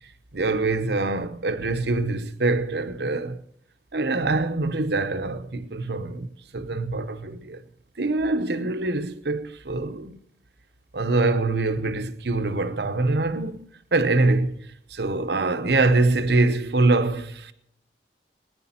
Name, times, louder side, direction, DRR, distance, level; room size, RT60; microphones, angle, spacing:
voice 1, 0.3-3.4 3.9-6.3 6.5-7.6 8.0-10.2 10.9-13.6 13.9-17.5, right 2 dB, 70° right, 0.8 m, -24 dB
20.5 x 10.0 x 4.3 m
head